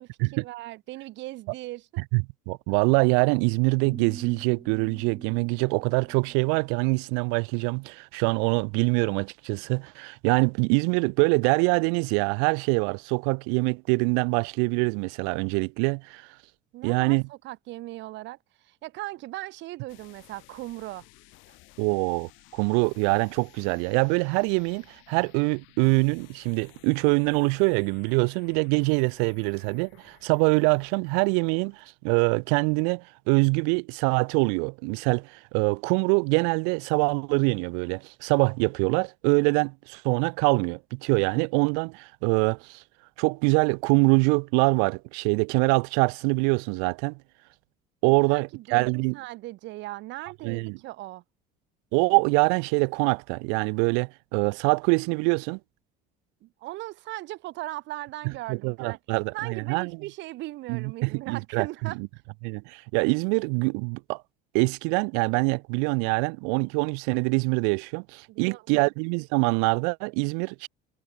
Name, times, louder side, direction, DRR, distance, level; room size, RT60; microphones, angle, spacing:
voice 1, 0.0-1.9 16.7-21.0 48.3-51.2 56.4-59.0 59.3-62.0 68.3-68.9, right 18 dB, 65° right, 2.8 m, -38 dB
voice 2, 2.1-16.3 16.8-17.2 21.8-42.8 43.2-47.2 48.0-49.2 50.4-50.8 51.9-55.6 58.5-59.9 60.7-61.7 62.0-62.1 62.4-64.2 64.5-70.7, right 40 dB or more, 80° right, 0.7 m, -24 dB
sound 1, 3.8-7.0, right 4 dB, 20° right, 2.1 m, -45 dB
sound 2, 19.9-31.8, left 23 dB, 70° left, 6.7 m, -56 dB
supercardioid pair, 105°, 20 cm